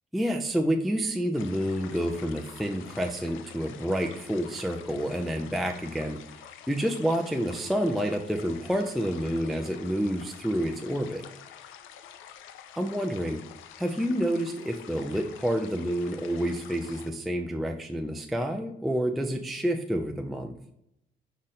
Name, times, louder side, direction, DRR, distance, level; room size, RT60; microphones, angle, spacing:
voice 1, 0.1-6.2 6.7-11.3 12.8-13.4 13.8-20.5, equal, ahead, 3 dB, 0.4 m, -29 dB
sound 1, 1.3-17.1, left 9 dB, 85° left, 0.5 m, -48 dB
5.3 x 4.0 x 2.5 m, 0.78 s
cardioid pair, 90°, 20 cm